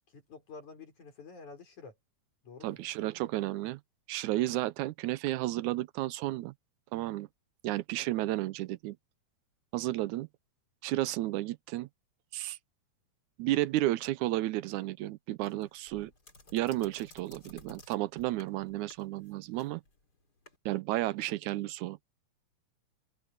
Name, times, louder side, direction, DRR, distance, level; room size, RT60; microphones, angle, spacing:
voice 1, 0.1-2.0 2.4-2.8, left 4 dB, 75° left, 7.2 m, -49 dB
voice 2, 2.6-3.8 4.1-6.5 6.9-7.3 7.6-9.0 9.7-10.3 10.8-11.9 12.3-12.6 13.4-16.1 16.5-19.8 20.7-22.0, right 16 dB, 85° right, 2.1 m, -32 dB
sound 1, 15.4-20.6, left 2 dB, 30° left, 4.3 m, -56 dB
open air
omnidirectional pair, 3.4 m